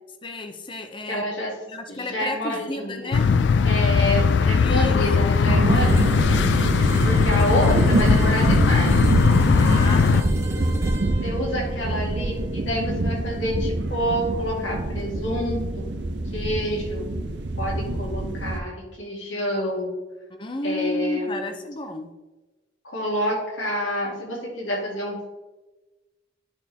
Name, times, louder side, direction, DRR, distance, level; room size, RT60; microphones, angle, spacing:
voice 1, 0.2-1.3 1.7-3.3 4.5-5.0 9.5-10.4 20.3-22.1, left 1 dB, 25° left, 7 dB, 0.6 m, -32 dB
voice 2, 1.1-1.6 1.9-3.2 3.6-6.4 7.0-8.9 11.2-15.9 16.3-17.1 17.6-19.9 20.6-21.4 22.8-25.3, equal, 85° left, -2 dB, 2.4 m, -28 dB
Field and Traffic, 3.1-10.2, left 5 dB, 65° left, 0.3 m, -19 dB
sound 1, 5.4-18.6, right 2 dB, 65° right, 0.7 m, -25 dB
sound 2, 5.6-13.4, right 2 dB, 15° right, 0.7 m, -38 dB
10.5 x 4.4 x 3.4 m, 1.1 s
head